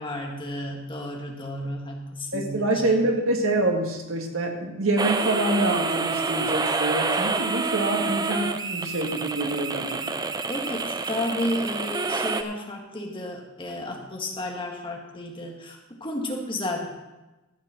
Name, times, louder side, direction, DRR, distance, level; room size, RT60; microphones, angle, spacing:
voice 1, 0.0-3.0 10.4-16.9, left 1 dB, 25° left, 1 dB, 1.5 m, -32 dB
voice 2, 2.3-10.1, right 2 dB, 75° right, 2 dB, 1.8 m, -26 dB
sound 1, 5.0-12.4, right 3 dB, 20° right, 0.4 m, -28 dB
13.5 x 5.7 x 6.2 m, 1.1 s
head